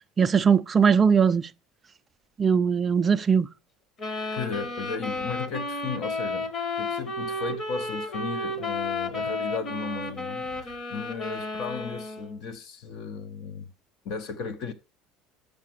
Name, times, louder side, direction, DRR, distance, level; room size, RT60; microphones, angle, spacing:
voice 1, 0.2-1.5 2.4-3.5, right 6 dB, 20° right, 0.3 m, -20 dB
sound 1, 4.0-12.4, left 2 dB, 30° left, 1.2 m, -32 dB
voice 2, 4.3-13.7 14.0-14.7, left 5 dB, 50° left, 0.7 m, -35 dB
6.5 x 5.8 x 6.0 m
cardioid pair, 160°, 0 cm